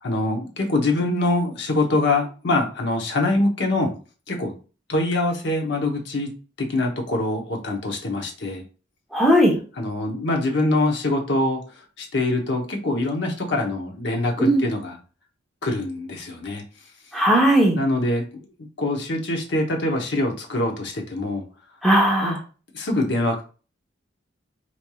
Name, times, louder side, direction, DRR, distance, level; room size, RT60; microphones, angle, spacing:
voice 1, 0.0-3.9 4.3-4.5 4.9-6.3 6.6-8.6 9.8-11.6 12.0-15.0 15.6-16.6 17.8-18.2 18.8-21.4 22.2-22.4 22.7-23.4, left 2 dB, 65° left, 2 dB, 0.9 m, -24 dB
voice 2, 9.1-9.6 14.4-14.7 17.1-17.8 21.8-22.4, right 1 dB, ahead, -2 dB, 0.9 m, -17 dB
4.3 x 3.1 x 2.3 m, 0.35 s
head